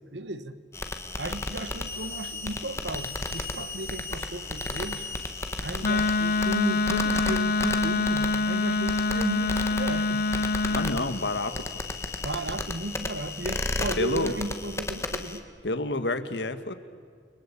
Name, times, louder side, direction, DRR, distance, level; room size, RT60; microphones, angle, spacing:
voice 1, 0.1-0.6 1.2-5.1 5.6-10.2 12.2-15.5, right 1 dB, 85° right, 12 dB, 1.5 m, -34 dB
sound 1, 0.7-15.4, left 2 dB, 15° left, 1.6 m, -34 dB
sound 2, 1.2-14.2, left 10 dB, 35° left, 2.9 m, -44 dB
Wind instrument woodwind instrument, 5.8-11.0, left 3 dB, 55° left, 0.7 m, -25 dB
voice 2, 10.7-11.8 14.0-14.4 15.6-16.7, left 2 dB, 85° left, 11 dB, 1.7 m, -29 dB
30.0 x 22.5 x 8.6 m, 2.1 s
head